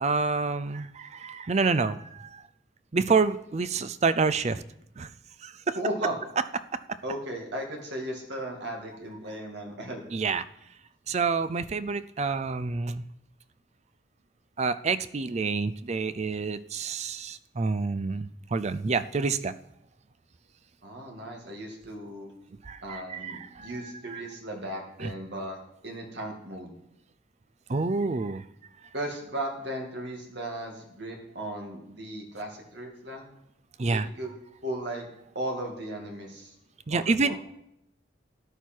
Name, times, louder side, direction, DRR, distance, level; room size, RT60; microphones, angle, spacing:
voice 1, 0.0-2.4 2.9-4.6 5.0-5.1 5.4-5.8 10.1-10.4 11.1-13.0 14.6-19.5 22.7-23.7 24.1-24.2 25.0-25.1 27.7-28.4 33.8-34.1 36.9-37.4, right 4 dB, 35° right, 14 dB, 0.4 m, -28 dB
voice 2, 5.8-6.1 7.0-10.1 20.8-22.3 22.8-26.7 28.9-33.2 33.9-34.3 34.6-35.1 35.3-36.6 36.9-37.4, right 1 dB, 60° right, 1 dB, 2.4 m, -36 dB
13.0 x 10.0 x 4.6 m, 0.81 s
head